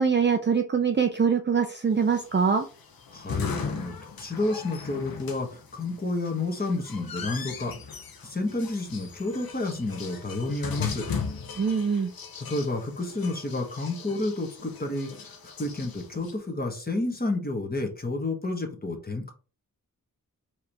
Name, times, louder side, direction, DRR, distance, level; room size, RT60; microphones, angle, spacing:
voice 1, 0.0-2.6 11.6-12.1, right 6 dB, 30° right, 6 dB, 0.4 m, -23 dB
sound 1, 2.0-16.3, left 6 dB, 75° left, 0.8 m, -38 dB
voice 2, 3.1-7.8 8.2-11.1 12.5-19.3, left 2 dB, 25° left, 2 dB, 1.2 m, -30 dB
4.7 x 2.9 x 3.4 m, 0.35 s
wide cardioid pair, 105°, 36 cm